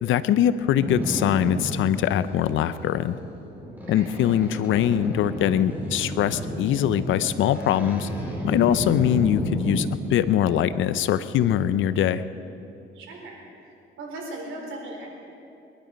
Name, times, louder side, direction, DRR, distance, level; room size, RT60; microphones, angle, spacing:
voice 1, 0.0-3.2 3.9-8.1 8.4-12.2, left 10 dB, 80° left, 14 dB, 0.7 m, -22 dB
Boat Water vehicle, 0.8-9.8, equal, 10° right, 4.8 m, -32 dB
voice 2, 12.9-13.4 14.0-15.1, right 2 dB, 85° right, -1 dB, 4.1 m, -37 dB
22.5 x 11.5 x 5.2 m, 2.7 s
cardioid pair, 90°, 20 cm